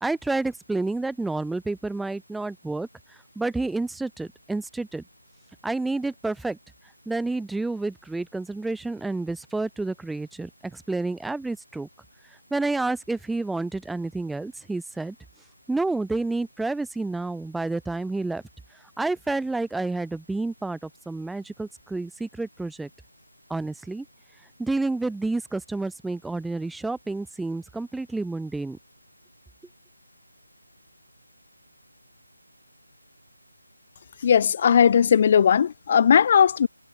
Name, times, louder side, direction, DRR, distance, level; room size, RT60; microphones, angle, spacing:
voice 1, 0.0-2.9 3.3-5.0 5.6-6.6 7.1-11.9 12.5-15.1 15.7-18.4 19.0-22.9 23.5-24.0 24.6-28.8, right 2 dB, ahead, 1.4 m, -29 dB
voice 2, 34.2-36.7, left 7 dB, 30° left, 2.0 m, -18 dB
figure-of-eight pair, 155°, 0 cm